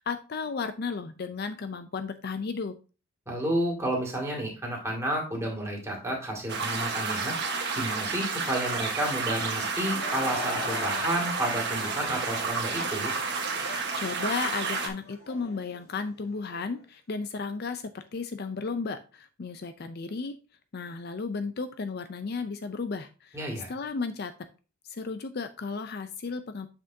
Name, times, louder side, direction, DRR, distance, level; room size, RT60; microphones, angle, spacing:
voice 1, 0.0-2.7 13.9-20.4 20.7-23.4 23.7-24.3 24.9-26.7, left 4 dB, 45° left, 10 dB, 0.5 m, -34 dB
voice 2, 3.3-7.3 7.8-13.1 23.3-23.7, right 1 dB, 15° right, -1 dB, 2.2 m, -31 dB
sound 1, 6.5-14.9, right 4 dB, 55° right, 1.4 m, -31 dB
Laughter / Crowd, 9.6-16.6, left 2 dB, 85° left, 3.1 m, -40 dB
7.6 x 6.0 x 2.7 m, 0.33 s
head